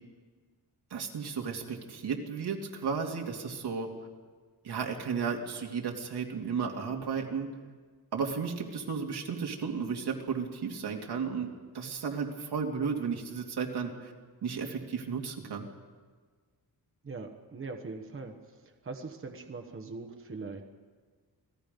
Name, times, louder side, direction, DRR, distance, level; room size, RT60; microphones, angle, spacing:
voice 1, 0.9-3.9 4.6-7.5 8.1-14.1 14.4-15.7, right 5 dB, 85° right, 1 dB, 2.6 m, -34 dB
voice 2, 17.0-20.6, right 3 dB, 35° right, 4 dB, 1.3 m, -41 dB
28.0 x 18.0 x 5.3 m, 1.5 s
wide cardioid pair, 175°, 39 cm